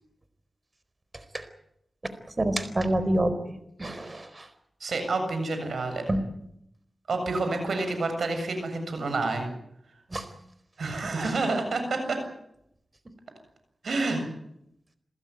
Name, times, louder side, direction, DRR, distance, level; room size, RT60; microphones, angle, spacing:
voice 1, 1.1-1.5 2.4-4.5 6.1-6.2 10.1-10.3 11.0-11.3, right 1 dB, 35° right, 12 dB, 4.4 m, -28 dB
voice 2, 4.8-6.0 7.1-9.5 10.8-12.2 13.8-14.3, right 3 dB, 80° right, 6 dB, 7.4 m, -28 dB
28.0 x 15.0 x 9.5 m, 0.77 s
cardioid pair, 60°, 0 cm